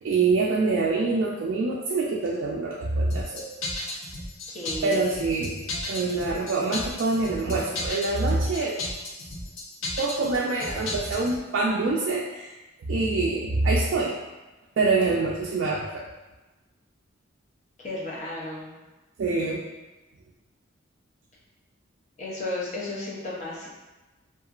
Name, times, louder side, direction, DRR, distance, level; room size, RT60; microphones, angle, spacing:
voice 1, 0.0-3.6 4.8-8.8 10.0-14.2 14.8-16.1 19.2-19.6, right 3 dB, 70° right, -3 dB, 0.3 m, -25 dB
sound 1, 3.1-11.4, left 2 dB, 85° left, 0.6 m, -34 dB
voice 2, 4.5-5.1 14.9-15.0 17.8-18.7 22.2-23.7, left 2 dB, 35° left, -6 dB, 0.6 m, -33 dB
2.8 x 2.4 x 2.4 m, 1.1 s
head